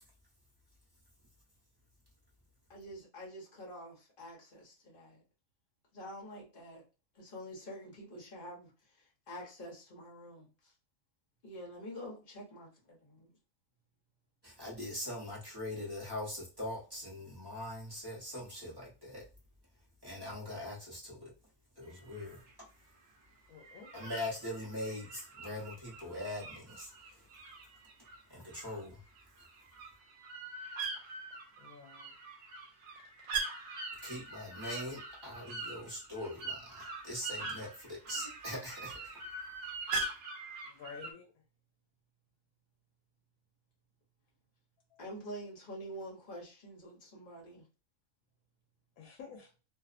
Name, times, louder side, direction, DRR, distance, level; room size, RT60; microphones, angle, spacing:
voice 1, 2.7-5.2 5.9-6.8 7.1-10.7 11.4-13.3 38.1-38.4 45.0-47.7, equal, 45° left, 1.0 m, -47 dB
voice 2, 14.4-19.2 20.0-21.3 21.8-22.4 23.9-27.2 28.3-29.0 34.0-39.1, left 1 dB, 25° right, 0.7 m, -42 dB
sound 1, 21.9-22.5 23.6-28.9 29.2-41.1, right 3 dB, 65° right, 0.9 m, -42 dB
voice 3, 23.5-24.1 31.6-32.1 40.6-41.3 44.9-45.0 49.0-49.5, left 5 dB, 85° left, 1.1 m, -51 dB
2.7 x 2.0 x 2.4 m
omnidirectional pair, 1.5 m